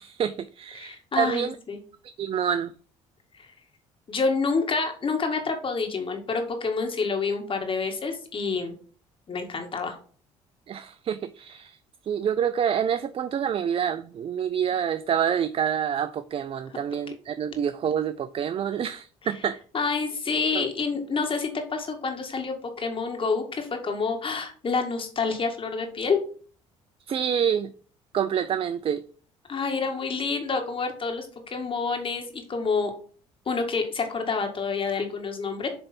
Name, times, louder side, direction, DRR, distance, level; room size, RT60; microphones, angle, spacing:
voice 1, 0.0-1.6 2.0-2.7 10.7-11.8 12.0-19.6 20.5-20.7 27.1-27.7 28.1-29.0, right 8 dB, 40° right, 0.4 m, -27 dB
voice 2, 0.8-1.8 3.4-3.5 4.1-8.8 9.3-10.0 19.7-26.2 29.5-32.9 33.5-35.7, left 4 dB, 40° left, 1.8 m, -28 dB
7.7 x 3.3 x 4.4 m
supercardioid pair, 65°, 14 cm